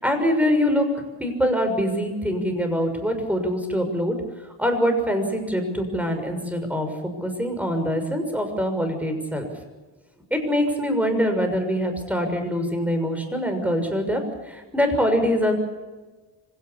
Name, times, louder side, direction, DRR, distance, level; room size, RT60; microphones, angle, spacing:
voice 1, 0.0-0.9 1.2-4.2 4.6-9.5 10.3-15.5, equal, 5° right, 6 dB, 6.3 m, -24 dB
26.0 x 17.5 x 8.5 m, 1.3 s
cardioid pair, 100°, 45 cm